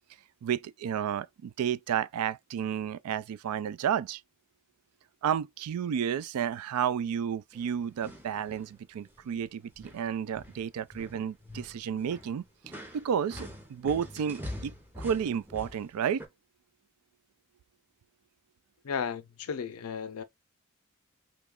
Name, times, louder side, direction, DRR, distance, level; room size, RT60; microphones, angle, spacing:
voice 1, 0.4-4.2 5.2-12.4 12.9-16.2, right 8 dB, 85° right, 0.3 m, -31 dB
sound 1, 7.5-8.7 9.0-9.4 9.7-16.3, left 1 dB, 10° right, 0.7 m, -45 dB
voice 2, 18.8-20.2, left 6 dB, 75° left, 0.5 m, -34 dB
3.1 x 2.3 x 3.5 m
head